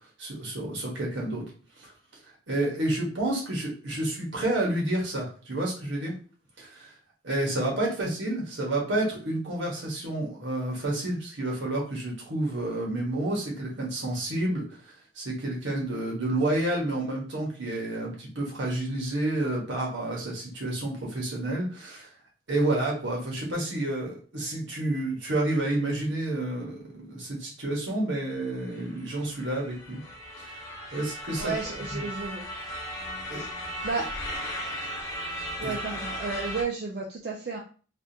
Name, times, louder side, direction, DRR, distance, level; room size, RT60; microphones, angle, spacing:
voice 1, 0.2-1.4 1.8-1.9 2.5-6.1 6.6-6.9 7.2-22.1 22.5-30.0 30.4-30.5 30.9-31.5 31.9-32.0 33.3-33.4 35.6-35.7, right 1 dB, 80° right, -2 dB, 1.2 m, -30 dB
sound 1, 28.5-36.6, equal, 15° left, 1.0 m, -37 dB
voice 2, 31.4-32.5 33.3-33.5 33.8-34.1 35.6-37.6, right 4 dB, 55° right, 0 dB, 0.4 m, -32 dB
3.4 x 2.4 x 2.8 m, 0.39 s
head